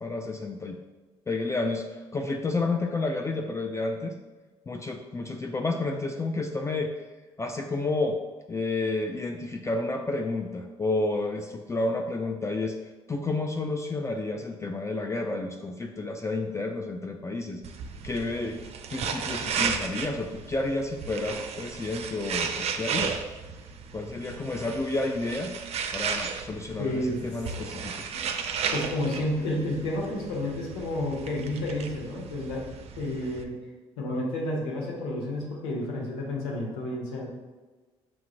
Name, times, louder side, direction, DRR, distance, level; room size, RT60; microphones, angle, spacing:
voice 1, 0.0-0.8 1.3-4.2 4.7-7.0 7.4-8.2 8.5-12.8 13.1-17.6 18.0-23.2 23.9-25.5 25.9-28.1, left 2 dB, 20° left, 4 dB, 0.4 m, -30 dB
sound 1, 17.6-33.4, right 6 dB, 50° right, 0.4 m, -34 dB
voice 2, 26.8-27.2 28.1-28.2 28.7-32.6 33.0-33.5 34.0-37.3, left 1 dB, 85° left, -2 dB, 0.9 m, -30 dB
5.9 x 2.5 x 3.0 m, 1.3 s
hypercardioid pair, 50°, 13 cm